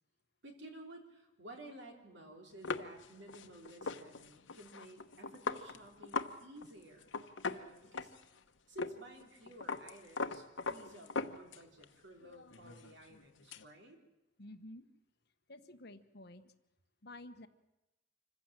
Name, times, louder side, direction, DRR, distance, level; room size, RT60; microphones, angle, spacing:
voice 1, 0.4-7.1 7.5-8.1 8.7-14.0, right 1 dB, 65° right, 3 dB, 3.7 m, -54 dB
sound 1, 2.6-6.4 6.6-6.7 7.0-8.4 8.8-9.0 9.2-11.8 12.2-13.6, left 4 dB, 80° left, 1.0 m, -40 dB
voice 2, 14.4-14.8 15.5-16.5 17.0-17.5, left 1 dB, 55° left, 10 dB, 1.2 m, -51 dB
26.0 x 15.5 x 7.5 m, 0.97 s
head